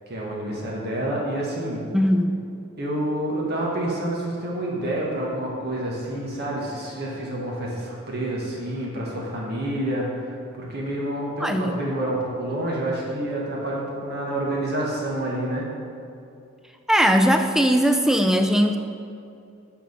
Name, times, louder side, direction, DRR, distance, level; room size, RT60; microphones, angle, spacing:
voice 1, 0.1-1.8 2.8-15.7, right 1 dB, 50° right, -4 dB, 1.5 m, -28 dB
voice 2, 1.9-2.3 11.4-11.8 16.9-18.8, equal, ahead, 6 dB, 0.4 m, -19 dB
7.4 x 4.7 x 5.4 m, 2.5 s
head